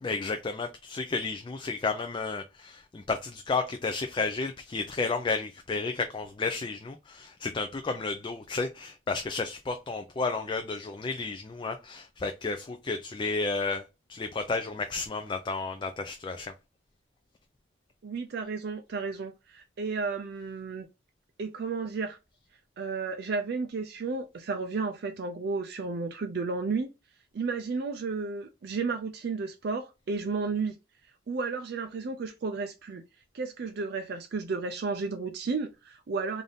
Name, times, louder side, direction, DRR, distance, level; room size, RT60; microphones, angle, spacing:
voice 1, 0.0-13.8 14.1-16.5, left 4 dB, 25° left, 0.3 m, -32 dB
voice 2, 18.0-20.9 21.4-22.2 22.8-26.9 27.3-30.8 31.3-33.0 33.3-36.4, right 4 dB, 55° right, 0.4 m, -33 dB
3.5 x 2.6 x 3.9 m
head